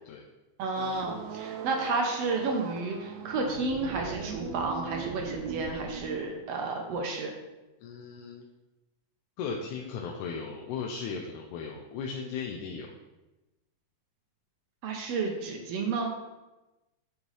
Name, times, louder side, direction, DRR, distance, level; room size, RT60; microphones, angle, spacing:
voice 1, 0.6-7.3 14.8-16.1, right 3 dB, 70° right, 2 dB, 1.7 m, -31 dB
sound 1, 0.7-6.2, right 7 dB, 85° right, 1.5 m, -39 dB
voice 2, 7.8-8.5 9.4-12.9, left 5 dB, 85° left, 0 dB, 2.1 m, -36 dB
8.5 x 5.3 x 3.2 m, 1.0 s
omnidirectional pair, 3.5 m